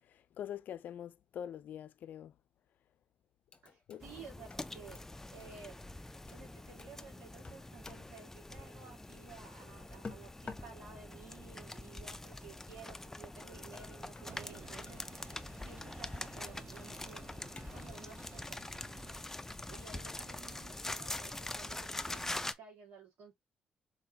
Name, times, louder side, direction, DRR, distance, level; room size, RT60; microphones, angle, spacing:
voice 1, 0.1-2.3 3.9-4.0, left 10 dB, 70° left, 0.4 m, -44 dB
sound 1, 3.5-4.1 4.5-5.6 6.3-6.5 6.8-7.0 7.4-8.2 10.0-10.8 12.6-12.7 13.7-15.0 17.6-18.0, left 4 dB, 35° left, 1.1 m, -51 dB
voice 2, 3.6-5.8 6.3-15.0 15.6-17.3 17.7-18.6 19.7-23.3, right 5 dB, 85° right, 2.8 m, -54 dB
sound 2, 4.0-22.5, left 2 dB, 15° left, 0.5 m, -44 dB
sound 3, 14.2-19.2, right 8 dB, 65° right, 0.5 m, -56 dB
4.1 x 3.8 x 2.7 m
cardioid pair, 70°, 3 cm